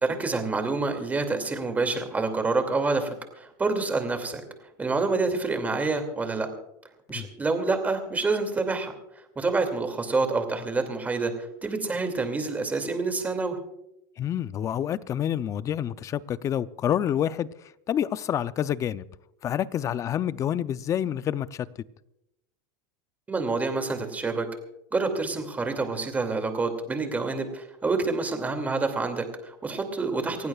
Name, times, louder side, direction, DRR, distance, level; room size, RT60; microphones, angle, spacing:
voice 1, 0.0-4.4 4.8-6.5 7.1-8.9 9.4-13.6 23.3-24.5 24.9-30.5, right 3 dB, 15° right, 2.5 m, -27 dB
voice 2, 14.2-19.0 19.4-21.7, left 10 dB, 25° left, 0.5 m, -28 dB
28.5 x 15.5 x 2.4 m
supercardioid pair, 140°, 12 cm